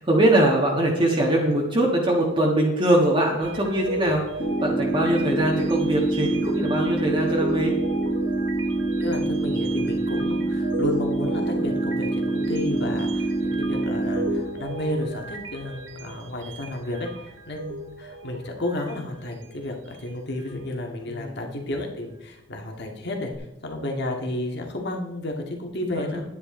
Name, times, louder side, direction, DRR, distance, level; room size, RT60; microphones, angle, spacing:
voice 1, 0.0-4.3 4.6-7.7 21.1-21.5 26.1-26.2, right 1 dB, 25° right, -2 dB, 1.5 m, -22 dB
sound 1, 3.4-20.6 21.0-21.3 23.3-23.4, right 1 dB, 75° right, 1.0 m, -36 dB
sound 2, 4.4-14.4, right 2 dB, 45° left, 2.2 m, -26 dB
voice 2, 9.0-23.3 23.6-26.2, left 1 dB, 60° left, 2 dB, 1.9 m, -31 dB
10.5 x 9.6 x 3.8 m, 0.96 s
head